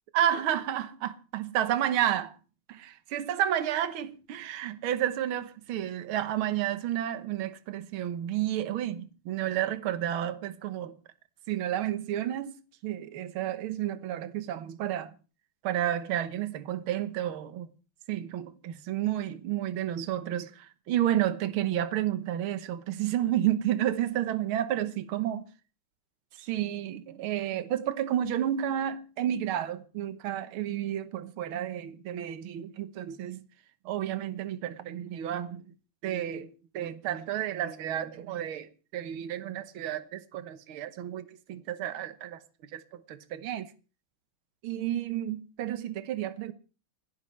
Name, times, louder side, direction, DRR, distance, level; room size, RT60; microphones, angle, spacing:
voice 1, 0.1-2.4 3.1-10.9 11.5-15.1 15.6-17.7 18.1-25.5 26.3-33.4 33.9-35.7 36.0-43.7 44.6-46.5, right 11 dB, 70° right, 1.9 m, -31 dB
29.5 x 11.0 x 3.3 m
omnidirectional pair, 2.4 m